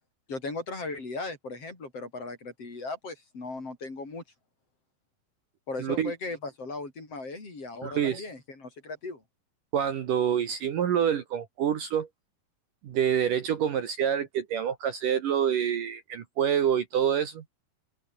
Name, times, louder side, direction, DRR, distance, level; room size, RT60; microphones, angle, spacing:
voice 1, 0.3-4.2 5.7-9.2, left 3 dB, 35° left, 6.4 m, -37 dB
voice 2, 5.8-6.1 7.8-8.2 9.7-12.1 12.8-17.4, right 9 dB, 60° right, 2.9 m, -27 dB
open air
omnidirectional pair, 4.8 m